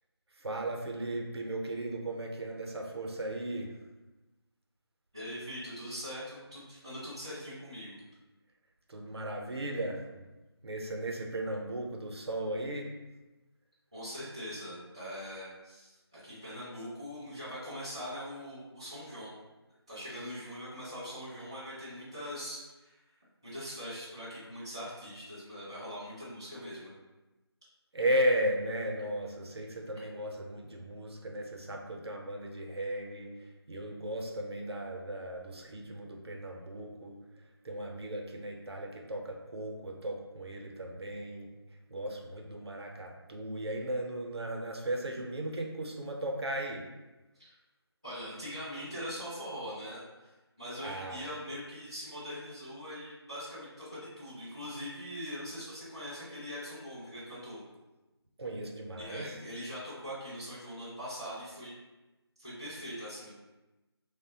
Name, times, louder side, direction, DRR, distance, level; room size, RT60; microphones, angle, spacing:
voice 1, 0.3-3.7 8.9-10.2 10.6-12.9 27.9-41.5 41.9-46.9 50.8-51.3 58.4-59.3, right 1 dB, 70° right, 1 dB, 0.5 m, -36 dB
voice 2, 5.1-7.9 13.9-19.4 19.9-23.0 23.4-26.9 47.4-47.5 48.0-57.6 59.0-61.7 62.4-63.3, equal, 10° right, -13 dB, 0.4 m, -42 dB
3.0 x 2.1 x 2.6 m, 1.1 s
figure-of-eight pair, 170°, 14 cm